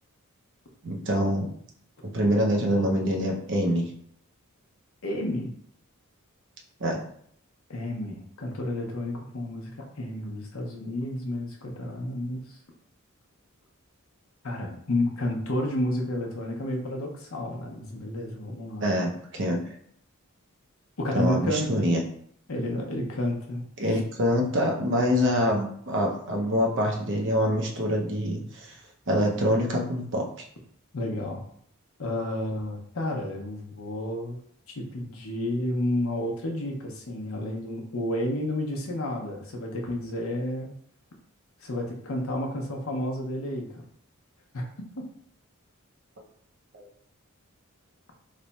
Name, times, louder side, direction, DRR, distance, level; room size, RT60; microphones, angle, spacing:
voice 1, 0.8-1.5 2.1-3.8 6.8-7.0 18.8-19.6 21.1-22.0 23.8-28.8 29.1-30.4 46.7-46.8, equal, 55° right, 0 dB, 0.7 m, -25 dB
voice 2, 5.0-5.5 7.7-12.6 14.4-18.9 21.0-21.8 22.5-23.9 30.9-31.4 32.0-34.4 34.7-40.7 41.6-43.8 44.5-44.6, left 1 dB, 70° left, 1 dB, 0.8 m, -31 dB
3.2 x 2.2 x 4.0 m, 0.65 s
head